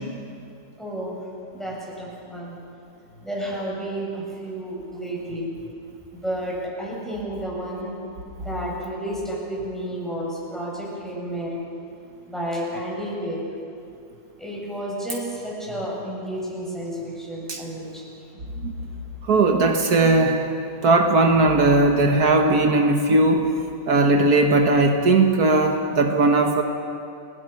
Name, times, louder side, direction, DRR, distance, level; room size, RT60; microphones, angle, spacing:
voice 1, 0.8-1.3 1.5-2.6 3.2-5.5 6.1-8.0 8.4-11.5 12.3-13.4 14.4-18.0, right 1 dB, ahead, -5 dB, 7.9 m, -31 dB
voice 2, 19.3-20.4 20.8-23.5 23.9-26.6, right 2 dB, 75° right, 3 dB, 1.9 m, -18 dB
30.0 x 20.5 x 6.0 m, 2.5 s
omnidirectional pair, 1.6 m